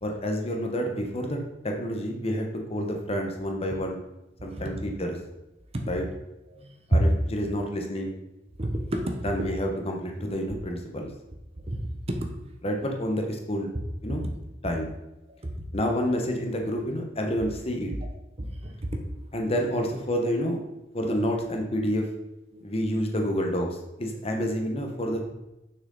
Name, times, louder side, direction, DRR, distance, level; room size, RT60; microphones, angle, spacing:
voice 1, 0.0-1.4 1.6-4.0 4.4-5.2 5.9-6.0 6.9-8.2 9.2-11.1 12.6-13.7 14.0-14.2 14.6-14.9 15.7-17.9 19.3-20.6 20.9-22.1 22.6-25.3, equal, 35° left, 2 dB, 1.1 m, -29 dB
voice 2, 8.6-9.2 11.7-11.8 12.1-12.3 18.4-19.0 22.5-22.6, right 1 dB, 35° right, 4 dB, 0.9 m, -28 dB
6.5 x 6.1 x 4.0 m, 0.94 s
head